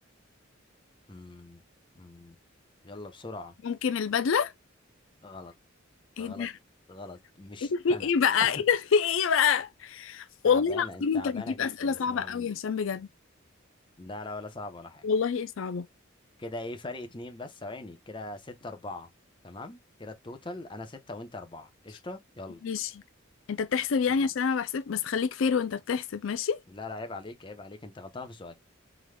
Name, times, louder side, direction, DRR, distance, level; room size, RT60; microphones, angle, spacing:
voice 1, 1.1-1.6 1.9-2.4 2.8-3.5 5.2-5.5 6.2-6.5 6.9-8.1 8.4-8.6 10.4-12.5 14.0-15.1 16.4-19.1 19.4-22.6 24.1-24.3 26.7-28.5, left 2 dB, 25° left, 0.8 m, -41 dB
voice 2, 3.6-4.5 6.2-6.5 7.6-13.1 15.0-15.9 22.6-22.9 23.5-26.6, left 6 dB, 70° left, 0.4 m, -27 dB
4.9 x 3.9 x 2.2 m
head